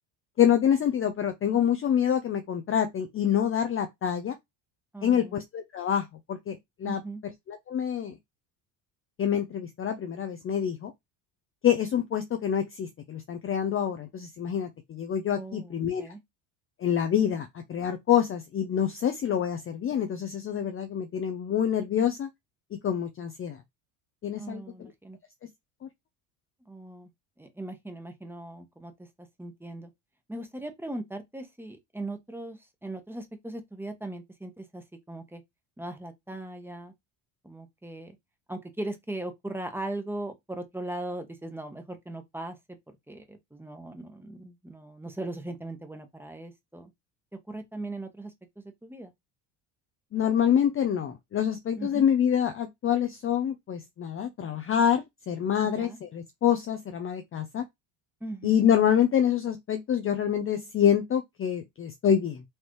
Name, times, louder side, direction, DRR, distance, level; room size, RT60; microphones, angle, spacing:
voice 1, 0.4-4.4 5.0-7.0 7.5-8.1 9.2-10.9 11.6-16.1 16.8-22.3 22.7-23.6 24.2-24.9 50.1-57.6 58.4-62.4, left 9 dB, 30° left, 0.5 m, -26 dB
voice 2, 4.9-5.4 6.8-7.2 15.3-16.2 24.3-25.2 26.7-27.1 27.4-28.9 29.4-29.9 30.3-35.4 35.8-36.9 37.4-38.2 38.5-42.6 43.1-46.9 47.5-49.1 51.7-52.1 55.6-56.0 58.2-58.6, right 2 dB, 5° right, 1.1 m, -39 dB
4.3 x 3.1 x 3.1 m
supercardioid pair, 95°, 46 cm